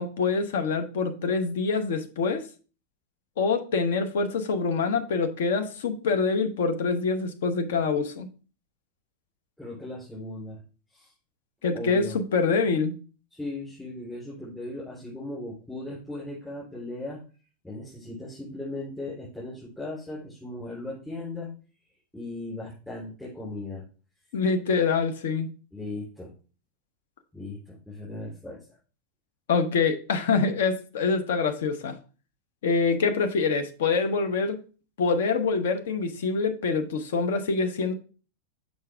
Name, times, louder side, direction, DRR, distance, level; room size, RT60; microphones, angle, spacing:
voice 1, 0.0-2.4 3.4-8.3 11.6-12.9 24.3-25.5 29.5-32.0 32.6-34.6 35.0-37.9, left 4 dB, 60° left, 0.8 m, -25 dB
voice 2, 9.6-10.6 10.9-11.1 11.7-12.2 13.3-17.2 17.6-21.5 22.1-23.8 25.7-26.3 27.3-28.8, left 2 dB, 10° left, 3.6 m, -37 dB
6.7 x 5.2 x 3.4 m
figure-of-eight pair, 90°, 0 cm